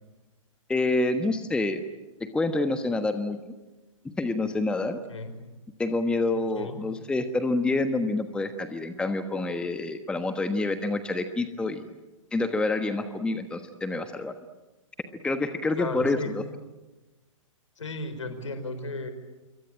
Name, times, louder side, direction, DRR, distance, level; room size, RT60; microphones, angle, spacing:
voice 1, 0.7-1.8 2.2-3.4 4.0-5.0 5.8-11.8 12.3-14.4 15.2-16.4, left 2 dB, 5° left, 9 dB, 1.2 m, -27 dB
voice 2, 6.3-6.8 15.8-16.3 17.8-19.1, left 2 dB, 65° left, 9 dB, 4.9 m, -35 dB
27.0 x 24.0 x 8.8 m, 1.1 s
figure-of-eight pair, 115°, 17 cm